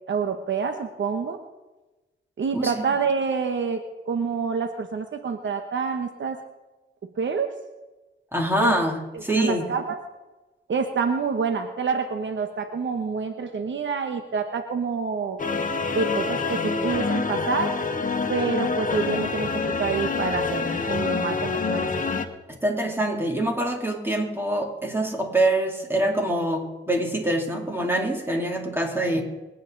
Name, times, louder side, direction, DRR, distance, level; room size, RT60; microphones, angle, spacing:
voice 1, 0.1-1.4 2.4-6.4 7.2-7.5 8.6-8.8 9.1-10.0 10.7-15.4 15.9-17.7 18.3-22.0, right 5 dB, 65° right, 7 dB, 1.2 m, -27 dB
voice 2, 8.3-9.7 22.5-29.2, right 1 dB, 10° right, 1 dB, 3.5 m, -25 dB
sound 1, 15.4-22.3, left 4 dB, 40° left, 1.5 m, -26 dB
24.5 x 9.3 x 4.0 m, 1.1 s
cardioid pair, 65°, 21 cm